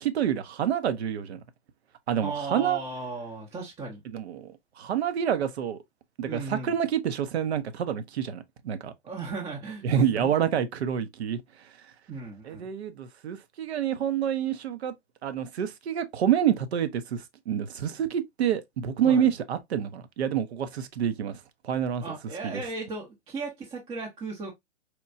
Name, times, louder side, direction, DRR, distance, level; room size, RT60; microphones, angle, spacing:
voice 1, 0.0-1.4 2.1-2.8 4.1-5.8 6.2-8.9 9.8-11.4 12.4-14.9 15.2-22.0 22.4-22.5, right 9 dB, 65° right, 0.7 m, -28 dB
voice 2, 2.2-4.0 6.3-6.8 9.0-10.3 12.1-12.7 19.0-19.3 22.0-24.5, right 3 dB, 15° right, 0.6 m, -36 dB
4.3 x 2.2 x 2.4 m
figure-of-eight pair, 115°, 35 cm